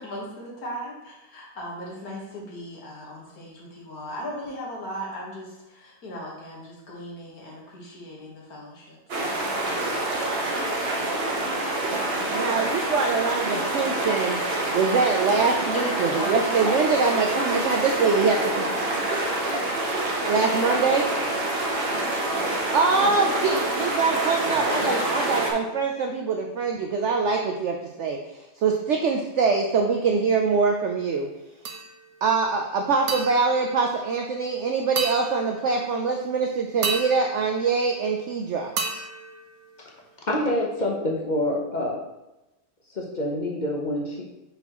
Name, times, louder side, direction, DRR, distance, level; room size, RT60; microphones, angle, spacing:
voice 1, 0.0-10.0 15.7-16.3 16.7-17.2 17.8-18.0, equal, 60° left, -3 dB, 1.9 m, -38 dB
sound 1, 9.1-25.5, right 2 dB, 45° right, 1.0 m, -26 dB
voice 2, 12.3-14.4 14.7-18.7 20.3-21.0 22.7-28.2 28.6-31.3 32.2-38.7, right 4 dB, 85° right, 2 dB, 0.6 m, -24 dB
sound 2, 31.7-32.3 33.1-34.5 35.0-36.0 36.8-38.3 38.8-40.2, right 4 dB, 65° right, 1.1 m, -33 dB
voice 3, 40.3-42.0 42.9-44.2, left 1 dB, 40° left, -1 dB, 0.7 m, -26 dB
5.8 x 5.5 x 3.0 m, 0.98 s
omnidirectional pair, 1.8 m